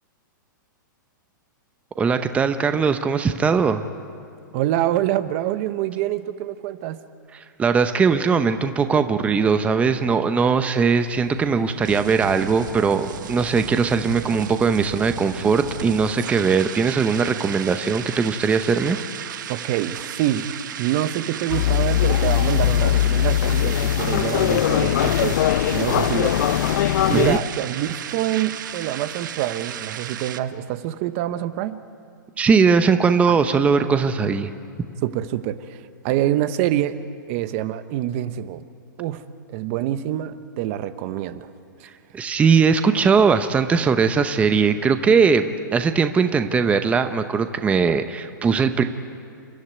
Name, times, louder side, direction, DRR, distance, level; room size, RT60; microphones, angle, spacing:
voice 1, 2.0-3.8 7.6-19.0 27.1-27.4 32.4-34.5 42.1-48.8, right 5 dB, 10° right, 9 dB, 0.8 m, -20 dB
voice 2, 4.5-7.0 19.5-25.4 25.7-31.8 33.3-33.4 35.0-37.0 37.3-38.6 39.0-39.2 39.5-41.5 41.8-41.9, right 12 dB, 40° right, 12 dB, 0.9 m, -26 dB
sound 1, 10.7-30.4, right 10 dB, 65° right, 1.1 m, -34 dB
sound 2, 21.5-27.4, left 12 dB, 60° left, 0.6 m, -20 dB
29.5 x 13.0 x 9.6 m, 2.4 s
hypercardioid pair, 140°, 11 cm